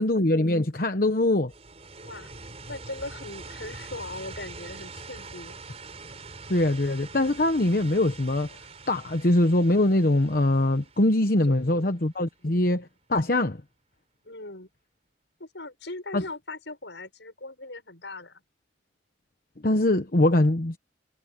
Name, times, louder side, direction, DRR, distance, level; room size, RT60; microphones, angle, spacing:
voice 1, 0.0-1.5 6.5-8.5 8.9-13.6 16.1-16.2 19.6-20.8, left 1 dB, 50° left, 1.1 m, -23 dB
sound 1, 1.5-12.2, right 3 dB, 35° right, 5.6 m, -44 dB
voice 2, 2.7-5.6 11.4-11.9 14.2-14.7 15.4-18.4, left 2 dB, 80° left, 7.3 m, -39 dB
head